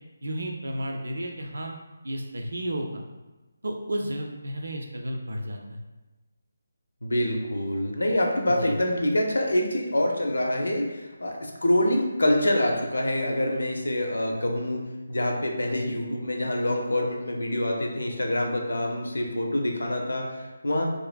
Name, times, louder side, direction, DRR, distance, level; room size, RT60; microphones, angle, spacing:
voice 1, 0.2-1.8 2.0-3.0 3.6-5.8 8.5-8.8 15.7-16.0, right 1 dB, 70° right, 2 dB, 0.4 m, -32 dB
voice 2, 7.0-14.8 15.1-20.8, left 1 dB, 75° left, 1 dB, 0.5 m, -26 dB
3.1 x 2.5 x 2.2 m, 1.2 s
figure-of-eight pair, 155°, 0 cm